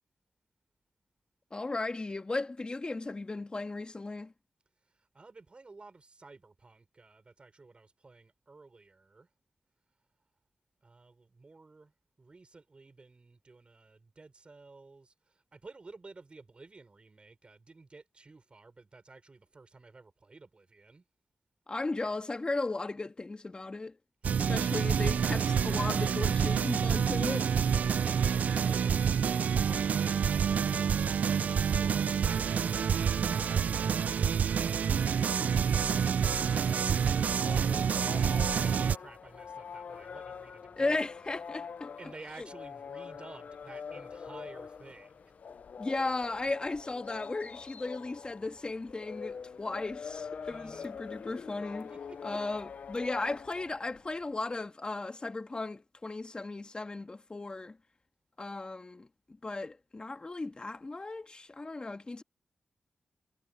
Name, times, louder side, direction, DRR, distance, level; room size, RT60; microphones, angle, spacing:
voice 1, 1.5-4.3 21.7-24.0 24.4-27.6 40.8-41.9 42.4-42.5 45.8-51.9 52.2-57.8 58.4-59.1 59.4-62.2, left 3 dB, 35° left, 1.9 m, -36 dB
voice 2, 4.8-9.3 10.8-11.9 12.2-21.0 27.8-29.2 29.5-41.0 42.0-45.3 50.5-50.9 51.9-52.4, right 3 dB, 45° right, 4.7 m, -53 dB
sound 1, 24.2-39.0, right 7 dB, 75° right, 0.4 m, -28 dB
sound 2, 37.3-54.3, left 6 dB, 70° left, 0.7 m, -44 dB
cardioid pair, 50°, 3 cm